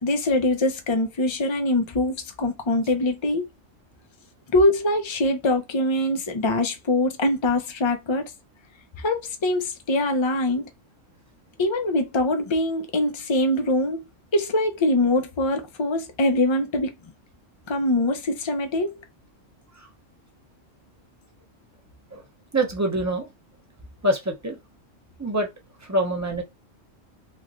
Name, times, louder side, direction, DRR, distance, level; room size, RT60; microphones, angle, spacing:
voice 1, 0.0-3.4 4.5-8.3 9.0-10.7 11.6-14.0 14.3-16.9 17.7-18.9, left 1 dB, 35° left, 0.5 m, -23 dB
voice 2, 22.5-23.3 24.0-24.6 25.2-25.5 25.8-26.4, right 1 dB, 15° right, 0.6 m, -25 dB
3.1 x 3.0 x 2.5 m
omnidirectional pair, 1.3 m